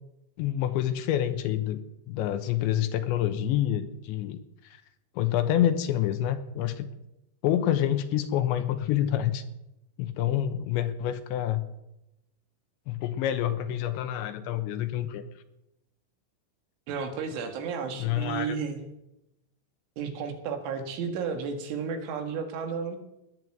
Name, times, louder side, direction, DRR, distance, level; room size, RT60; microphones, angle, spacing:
voice 1, 0.4-4.8 5.2-6.9 7.4-9.4 10.0-11.6 12.9-15.2 17.9-18.6, left 11 dB, 80° left, 9 dB, 3.1 m, -27 dB
voice 2, 16.9-18.8 20.0-23.0, right 6 dB, 80° right, 6 dB, 4.2 m, -33 dB
18.5 x 9.7 x 7.8 m, 0.90 s
omnidirectional pair, 5.5 m